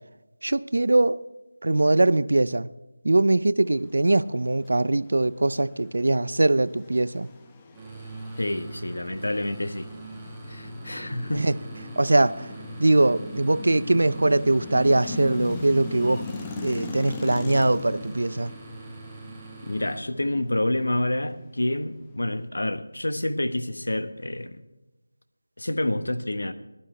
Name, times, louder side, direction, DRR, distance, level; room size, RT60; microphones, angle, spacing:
voice 1, 0.4-1.2 1.6-2.7 3.0-7.3 11.3-11.6 12.0-12.5 12.8-16.2 16.6-18.5, right 2 dB, 70° right, 0.5 m, -22 dB
sound 1, 5.7-22.5, left 3 dB, 15° left, 0.8 m, -39 dB
sound 2, 7.7-20.0, right 3 dB, 5° right, 1.6 m, -43 dB
voice 2, 8.4-9.9 10.5-11.5 19.6-24.6 25.6-26.5, left 1 dB, 85° left, 1.2 m, -28 dB
18.5 x 12.0 x 3.3 m
figure-of-eight pair, 170°, 0 cm